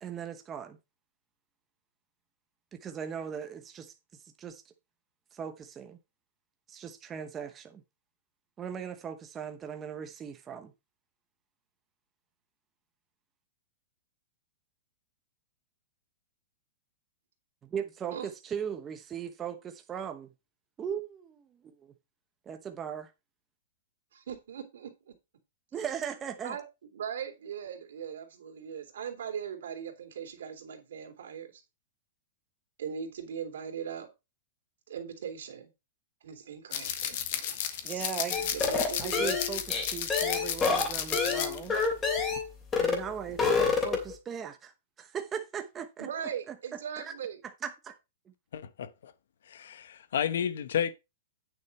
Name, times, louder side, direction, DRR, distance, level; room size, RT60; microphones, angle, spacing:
voice 1, 0.0-0.8 2.7-3.9 4.4-4.6 5.3-6.0 6.7-7.8 8.6-10.7 17.7-20.3 20.8-21.9 22.5-23.1 25.7-26.6 37.8-38.5 39.0-41.8 42.8-44.7 45.0-46.1 47.0-47.1 47.6-47.9, right 8 dB, 15° right, 0.9 m, -38 dB
voice 2, 24.1-25.1 26.4-26.6 26.9-31.6 32.8-34.1 34.9-35.7 36.2-38.1 38.5-39.4 46.0-47.4, right 8 dB, 80° right, 3.3 m, -40 dB
sound 1, 36.7-41.9 42.2-42.4, left 10 dB, 45° left, 1.6 m, -33 dB
sound 2, 38.3-42.5 42.7-43.0 43.3-44.1, left 4 dB, 15° left, 2.9 m, -28 dB
voice 3, 48.5-49.1 49.5-50.9, left 8 dB, 70° left, 1.0 m, -32 dB
9.5 x 6.6 x 4.3 m
supercardioid pair, 175°, 0 cm